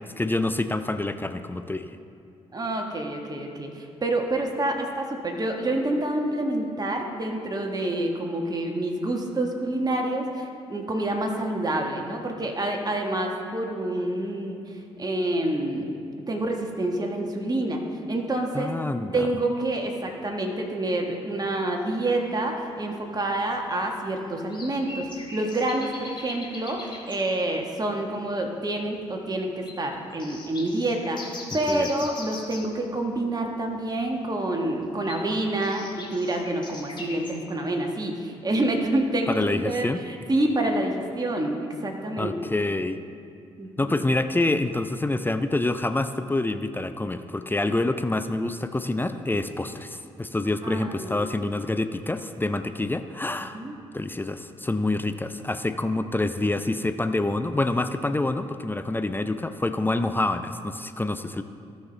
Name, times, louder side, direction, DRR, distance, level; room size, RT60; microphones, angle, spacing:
voice 1, 0.0-1.9 18.5-19.3 31.7-31.9 39.3-40.0 42.2-43.0 43.8-53.6 53.9-61.4, left 2 dB, 15° left, 10 dB, 0.5 m, -27 dB
voice 2, 2.5-16.0 16.3-17.8 18.1-18.7 19.1-39.4 39.6-42.3 43.6-43.9 50.6-51.3 53.4-53.7, right 1 dB, 25° right, 2 dB, 1.5 m, -28 dB
sound 1, 22.3-22.4 23.1-23.2 24.5-27.3 27.9-28.0 28.2-28.3 28.7-29.0 29.6-29.8 30.2-32.7 34.8-37.4, left 2 dB, 30° left, 1.9 m, -41 dB
16.5 x 5.5 x 3.4 m, 2.4 s
hypercardioid pair, 45°, 15 cm